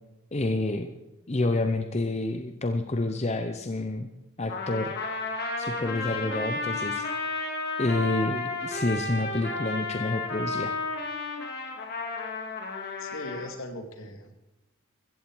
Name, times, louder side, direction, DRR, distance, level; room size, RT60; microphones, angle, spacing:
voice 1, 0.3-0.9 1.3-4.1 4.4-4.9 5.6-7.1 7.8-10.8, left 2 dB, 30° left, 7 dB, 0.6 m, -28 dB
Trumpet, 4.5-13.5, left 3 dB, 45° left, 2.5 m, -32 dB
voice 2, 13.0-14.5, left 1 dB, 65° left, 6 dB, 2.1 m, -40 dB
15.5 x 15.0 x 4.6 m, 0.98 s
head